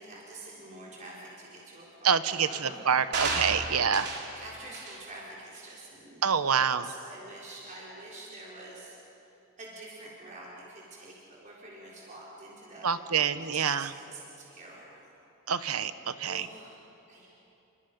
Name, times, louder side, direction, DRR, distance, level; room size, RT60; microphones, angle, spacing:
voice 1, 0.0-2.8 3.6-9.0 9.6-15.1 16.2-16.8 17.1-17.3, right 2 dB, 35° right, -5 dB, 4.1 m, -47 dB
voice 2, 2.0-4.1 6.2-6.9 12.8-13.9 15.5-16.5, right 7 dB, 85° right, 12 dB, 0.9 m, -27 dB
sound 1, 3.1-4.4 4.7-5.0 5.6-5.7, right 3 dB, 55° right, 3.3 m, -32 dB
29.5 x 24.5 x 5.3 m, 2.9 s
head